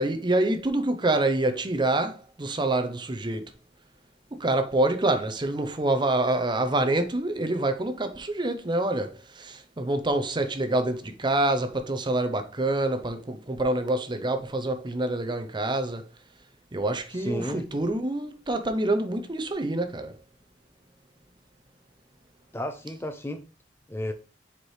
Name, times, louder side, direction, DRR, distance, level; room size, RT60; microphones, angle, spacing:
voice 1, 0.0-3.5 4.3-16.1 16.7-20.1, right 2 dB, 25° right, 0.7 m, -26 dB
voice 2, 17.1-17.6 22.5-23.4 23.9-24.1, left 1 dB, 15° left, 0.5 m, -32 dB
6.9 x 4.7 x 3.2 m
head